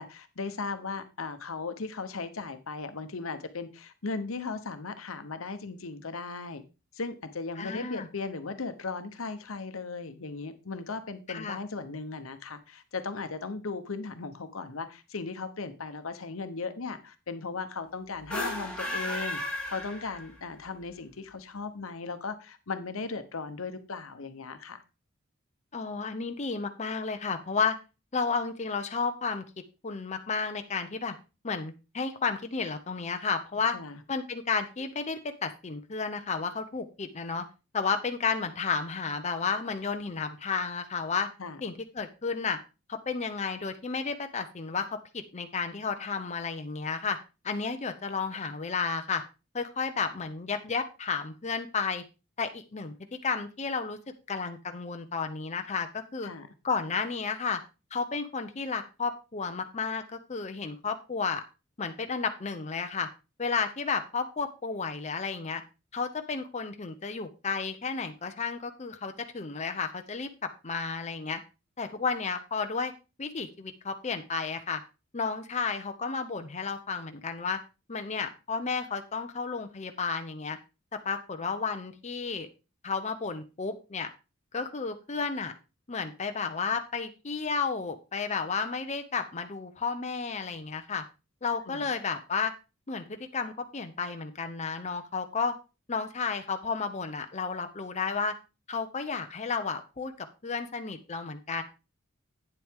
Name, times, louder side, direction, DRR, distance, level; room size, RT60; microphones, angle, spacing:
voice 1, 0.0-6.6 6.9-24.8 33.7-34.0 41.4-41.6 56.2-56.5 91.7-91.8, left 4 dB, 85° left, 0.9 m, -37 dB
voice 2, 7.6-8.1 11.3-11.6 25.7-27.8 28.1-29.4 29.8-31.1 31.4-33.8 34.1-37.4 37.7-41.3 41.6-42.6 42.9-44.9 45.1-47.2 47.4-49.2 49.5-52.0 52.4-52.9 53.2-54.0 54.3-56.3 56.6-57.6 57.9-61.4 61.8-63.1 63.4-65.6 65.9-70.3 70.6-71.4 71.8-72.9 73.2-74.8 75.1-77.6 77.9-80.6 81.0-82.5 82.8-84.1 84.5-85.5 85.9-91.0 91.4-92.5 92.9-95.5 95.9-98.3 98.7-101.6, left 5 dB, 35° left, 0.7 m, -32 dB
sound 1, 18.2-20.5, left 1 dB, 5° left, 2.3 m, -34 dB
8.9 x 7.5 x 3.6 m
head